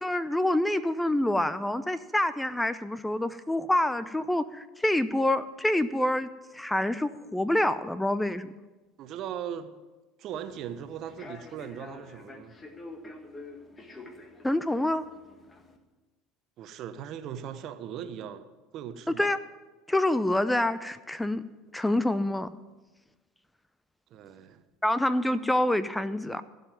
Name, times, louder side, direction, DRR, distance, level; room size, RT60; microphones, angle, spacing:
voice 1, 0.0-6.3 6.5-8.5 14.4-15.0 19.2-19.4 19.9-21.4 21.7-22.5 24.8-26.4, left 1 dB, 5° left, 14 dB, 0.6 m, -26 dB
voice 2, 9.0-9.7 10.2-12.6 16.6-19.3 24.1-24.6, right 9 dB, 55° right, 10 dB, 0.9 m, -39 dB
Human voice / Subway metro underground, 10.3-15.8, left 2 dB, 25° left, 1.7 m, -47 dB
15.5 x 5.4 x 9.1 m, 1.2 s
hypercardioid pair, 80°, 0 cm